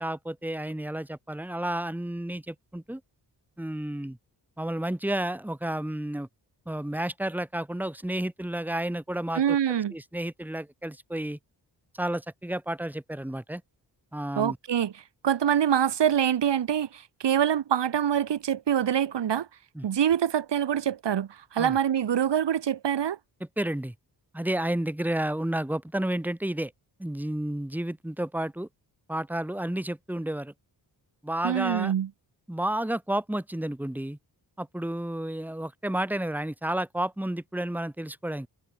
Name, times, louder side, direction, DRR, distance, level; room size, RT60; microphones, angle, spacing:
voice 1, 0.0-3.0 3.6-4.2 4.6-6.3 6.7-9.6 9.9-11.4 11.9-13.6 14.1-14.6 19.8-19.9 21.6-21.8 23.6-23.9 24.3-26.7 27.0-28.7 29.1-30.5 31.2-31.9 32.5-34.2 34.6-38.5, right 1 dB, 5° right, 3.6 m, -31 dB
voice 2, 9.3-9.9 14.4-14.9 15.2-19.5 19.8-23.2 31.4-32.1, right 9 dB, 85° right, 6.5 m, -25 dB
wide cardioid pair, 175°, 41 cm